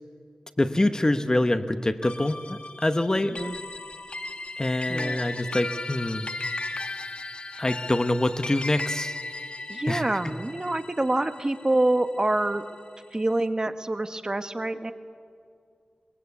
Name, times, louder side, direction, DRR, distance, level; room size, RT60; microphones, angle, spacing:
voice 1, 0.6-3.4 4.6-6.3 7.6-9.2 9.9-10.3, left 1 dB, 25° left, 10 dB, 1.0 m, -25 dB
sound 1, 2.0-12.6, left 2 dB, 45° left, 1.2 m, -36 dB
voice 2, 3.1-3.6 4.9-5.2 7.5-7.6 9.7-12.6 13.1-14.9, right 2 dB, 30° right, 9 dB, 1.1 m, -26 dB
22.5 x 22.0 x 8.4 m, 2.3 s
wide cardioid pair, 80°, 3 cm